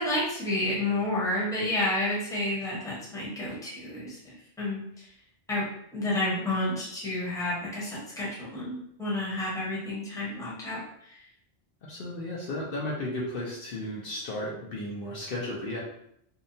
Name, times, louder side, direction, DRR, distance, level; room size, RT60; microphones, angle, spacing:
voice 1, 0.0-4.8 5.5-5.6 5.9-11.2, left 1 dB, 5° left, -7 dB, 0.7 m, -30 dB
voice 2, 11.9-15.8, left 1 dB, 60° left, -4 dB, 0.7 m, -34 dB
2.7 x 2.1 x 2.6 m, 0.73 s
omnidirectional pair, 1.1 m